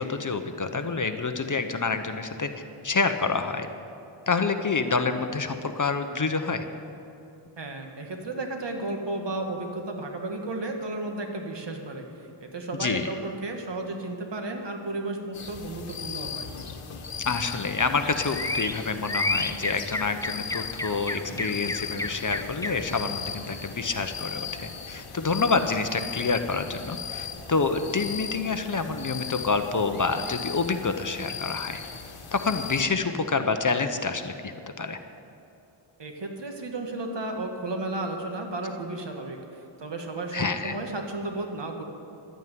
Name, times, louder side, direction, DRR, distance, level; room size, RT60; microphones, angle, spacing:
voice 1, 0.0-2.5 2.8-3.7 4.3-6.6 12.8-13.1 17.2-31.8 32.3-35.0 40.3-40.7, left 4 dB, 40° left, 8 dB, 0.9 m, -27 dB
voice 2, 7.6-16.5 36.0-41.8, right 2 dB, 55° right, 3 dB, 1.9 m, -33 dB
sound 1, 15.3-32.8, left 6 dB, 85° left, 1.3 m, -38 dB
sound 2, 17.5-23.1, left 2 dB, 5° left, 0.5 m, -33 dB
12.5 x 9.2 x 9.4 m, 2.7 s
wide cardioid pair, 85°, 50 cm